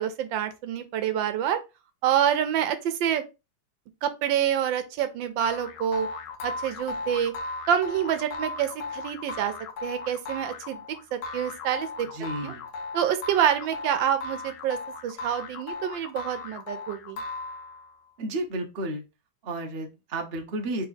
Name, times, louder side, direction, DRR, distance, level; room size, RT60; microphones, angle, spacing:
voice 1, 0.0-1.6 2.0-3.2 4.0-6.1 6.4-7.3 7.7-9.5 9.8-10.8 11.1-12.1 12.4-12.5 12.9-17.2, right 9 dB, 80° right, 1.4 m, -27 dB
sound 1, 5.4-18.0, left 3 dB, 70° left, 1.4 m, -37 dB
voice 2, 12.1-12.7 18.2-19.0 19.4-20.8, right 1 dB, 45° right, 0.8 m, -32 dB
4.0 x 3.3 x 3.9 m
omnidirectional pair, 2.0 m